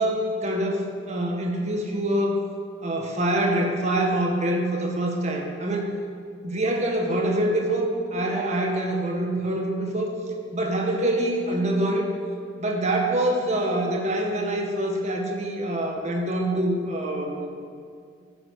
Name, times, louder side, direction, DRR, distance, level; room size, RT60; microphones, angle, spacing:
voice 1, 0.0-2.4 2.8-5.9 6.4-10.2 10.5-12.1 12.6-17.5, right 1 dB, 40° right, 1 dB, 1.8 m, -25 dB
13.0 x 10.5 x 6.7 m, 2.2 s
head